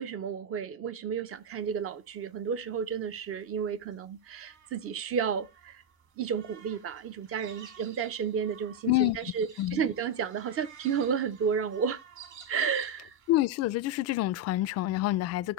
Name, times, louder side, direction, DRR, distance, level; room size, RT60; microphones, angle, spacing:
voice 1, 0.0-5.8 6.2-12.0 12.5-13.1, right 7 dB, 40° right, 0.7 m, -32 dB
sound 1, 1.3-13.4, right 7 dB, 55° right, 3.3 m, -53 dB
voice 2, 13.3-15.5, left 17 dB, 45° left, 0.4 m, -27 dB
12.0 x 6.6 x 3.1 m
cardioid pair, 125°, 35 cm